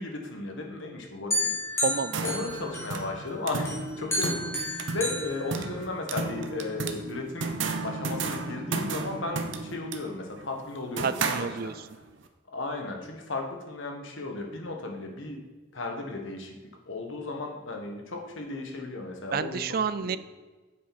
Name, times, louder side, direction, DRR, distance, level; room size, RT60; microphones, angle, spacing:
voice 1, 0.0-1.8 2.2-4.4 4.6-7.5 7.8-11.7 12.5-15.4 15.7-16.5 16.8-19.7 20.0-20.2, left 2 dB, 80° left, 2 dB, 1.6 m, -35 dB
sound 1, 1.3-3.2 3.7-6.2, left 1 dB, 15° left, 2.2 m, -32 dB
voice 2, 1.8-2.2 11.0-11.9 19.3-20.2, right 6 dB, 50° right, 15 dB, 0.4 m, -29 dB
sound 2, 1.8-12.0, right 4 dB, 70° right, 0.9 m, -34 dB
9.2 x 7.7 x 4.2 m, 1.3 s
head